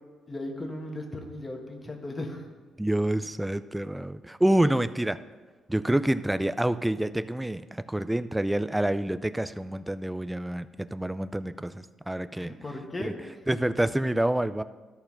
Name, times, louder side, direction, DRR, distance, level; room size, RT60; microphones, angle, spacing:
voice 1, 0.3-2.4 12.4-13.4, left 1 dB, 20° left, 2 dB, 1.5 m, -37 dB
voice 2, 2.8-5.2 5.7-12.5 13.0-13.1 13.5-14.6, right 1 dB, 5° right, 12 dB, 0.4 m, -27 dB
13.0 x 4.5 x 5.7 m, 1.3 s
cardioid pair, 100°, 0 cm